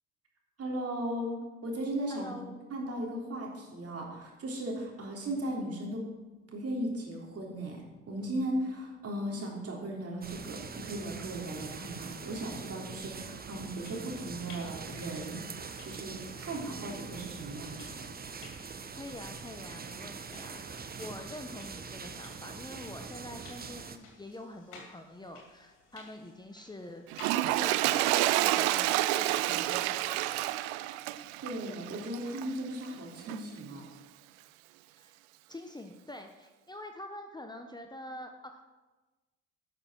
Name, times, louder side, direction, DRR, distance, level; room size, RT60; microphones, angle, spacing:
voice 1, 0.6-2.4 2.7-6.0 6.5-15.4 15.8-17.8 31.4-33.8, right 1 dB, 45° right, -1 dB, 3.5 m, -37 dB
voice 2, 2.1-2.7 18.9-27.0 27.6-30.3 34.9-35.2 35.5-38.8, left 1 dB, 10° left, 5 dB, 1.0 m, -46 dB
sound 1, 10.2-24.0, right 5 dB, 25° right, 1.0 m, -43 dB
sound 2, 13.5-28.5, left 4 dB, 80° left, 2.5 m, -56 dB
Toilet flush, 27.1-32.6 33.3-33.4, right 16 dB, 75° right, 0.5 m, -29 dB
11.5 x 6.6 x 6.3 m, 1.2 s
hypercardioid pair, 55°, 34 cm